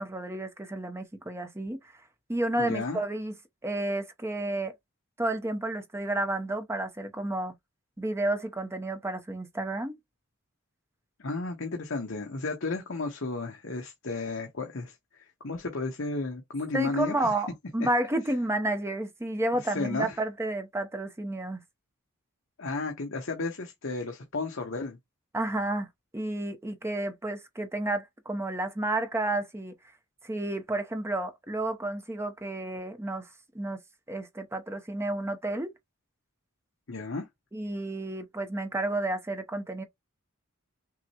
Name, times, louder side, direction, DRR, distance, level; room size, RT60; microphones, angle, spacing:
voice 1, 0.0-1.8 2.3-3.3 3.6-4.7 5.2-7.5 8.0-10.0 16.7-21.6 25.3-25.9 26.1-29.7 30.2-33.3 33.5-33.8 34.1-35.7 37.5-39.8, right 2 dB, 10° right, 0.7 m, -31 dB
voice 2, 2.5-3.0 11.2-17.3 19.5-20.2 22.6-25.0 36.9-37.3, left 3 dB, 65° left, 1.0 m, -33 dB
5.9 x 2.1 x 2.9 m
head